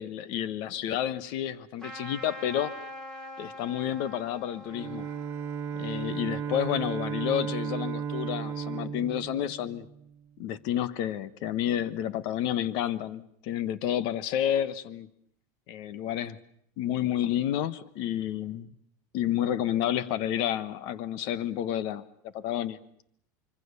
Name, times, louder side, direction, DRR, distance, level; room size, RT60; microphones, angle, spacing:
voice 1, 0.0-2.7 3.4-5.1 5.8-9.9 10.4-15.1 15.7-16.4 16.8-18.7 19.1-22.0 22.3-22.8, left 11 dB, 50° left, 16 dB, 1.2 m, -30 dB
Trumpet, 1.8-6.8, equal, 5° left, 3.5 m, -44 dB
Bowed string instrument, 4.7-10.3, right 7 dB, 25° right, 1.9 m, -35 dB
25.5 x 24.0 x 6.8 m, 0.68 s
supercardioid pair, 155°, 10 cm